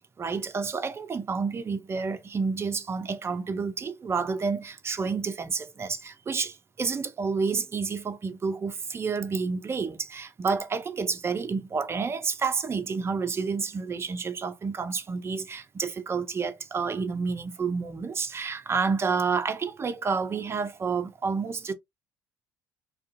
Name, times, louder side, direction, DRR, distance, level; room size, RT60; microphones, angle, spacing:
voice 1, 0.2-21.7, right 5 dB, 25° right, 0.4 m, -29 dB
2.4 x 2.3 x 2.5 m
figure-of-eight pair, 55°, 11 cm